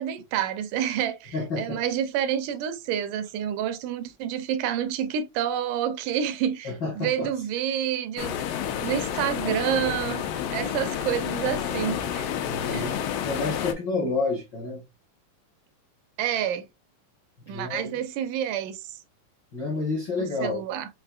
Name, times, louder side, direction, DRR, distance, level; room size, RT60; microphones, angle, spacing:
voice 1, 0.0-8.4 8.8-10.2 10.5-12.3 12.7-12.9 16.2-16.6 17.5-18.9 20.2-20.9, right 9 dB, 80° right, 2.0 m, -28 dB
voice 2, 1.3-1.8 6.6-7.3 12.4-14.8 17.5-18.0 19.5-20.6, left 3 dB, 70° left, 1.1 m, -30 dB
sound 1, 8.2-13.7, left 9 dB, 90° left, 2.3 m, -30 dB
5.6 x 2.6 x 2.3 m
omnidirectional pair, 3.8 m